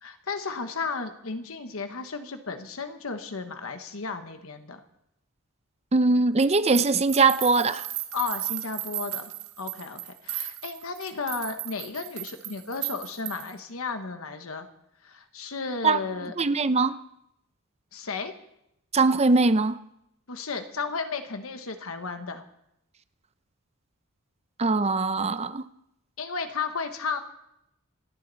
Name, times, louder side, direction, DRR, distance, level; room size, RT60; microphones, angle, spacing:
voice 1, 0.0-4.8 8.1-9.3 9.6-14.7 15.0-16.3 17.9-18.3 20.3-22.4 26.2-27.2, left 4 dB, 75° left, 1.2 m, -34 dB
voice 2, 5.9-7.9 15.8-16.0 16.4-17.0 18.9-19.8 24.6-25.6, right 3 dB, 30° right, 0.6 m, -21 dB
sound 1, 6.7-13.6, right 13 dB, 85° right, 1.7 m, -35 dB
28.0 x 10.0 x 4.1 m
head